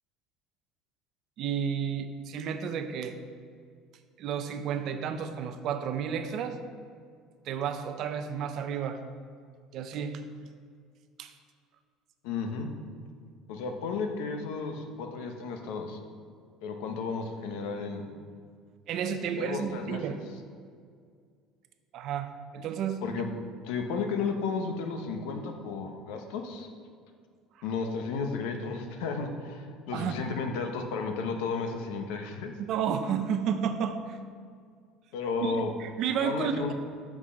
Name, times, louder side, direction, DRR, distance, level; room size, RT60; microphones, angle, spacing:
voice 1, 1.4-3.2 4.2-6.6 7.5-9.0 9.7-10.2 11.2-11.3 18.9-20.2 21.9-23.0 29.9-30.2 32.6-34.2 35.4-36.7, right 7 dB, 40° right, 8 dB, 0.5 m, -32 dB
voice 2, 12.2-12.7 13.5-16.0 16.6-18.1 19.4-20.2 23.0-23.3 23.6-26.7 27.6-32.5 35.1-35.7 36.2-36.7, left 4 dB, 75° left, 5 dB, 0.9 m, -33 dB
6.2 x 6.0 x 5.6 m, 2.1 s
cardioid pair, 180°, 0 cm